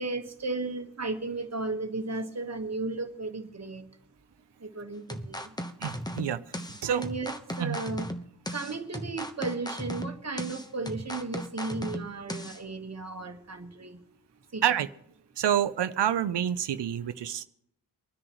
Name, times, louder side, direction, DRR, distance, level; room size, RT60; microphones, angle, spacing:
voice 1, 0.0-3.8 4.6-5.4 6.9-8.1 8.5-14.0 14.5-14.6, right 3 dB, 40° right, 6 dB, 1.4 m, -34 dB
sound 1, 5.1-12.6, equal, 10° left, 1.1 m, -37 dB
voice 2, 5.8-6.4 6.8-7.1 7.6-7.8 14.6-14.9 15.4-17.4, right 10 dB, 75° right, 12 dB, 0.6 m, -27 dB
25.0 x 10.0 x 3.1 m, 0.71 s
wide cardioid pair, 75°, 42 cm